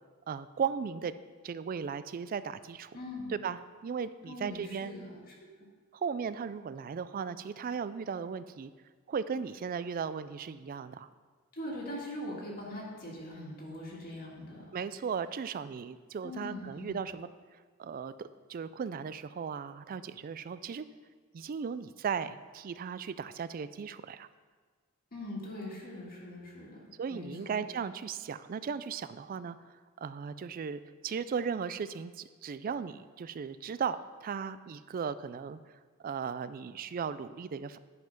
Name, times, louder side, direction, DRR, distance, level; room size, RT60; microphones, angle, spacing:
voice 1, 0.3-1.1 1.4-3.0 3.3-4.9 5.9-8.7 9.1-11.1 14.7-17.3 17.8-20.8 21.3-24.3 27.0-29.6 30.0-35.6 36.0-37.8, right 6 dB, 40° right, 14 dB, 0.3 m, -36 dB
voice 2, 2.9-3.4 4.2-5.3 11.5-14.7 16.2-17.0 25.1-27.6, left 1 dB, 40° left, -3 dB, 1.8 m, -42 dB
10.5 x 5.5 x 5.1 m, 1.5 s
head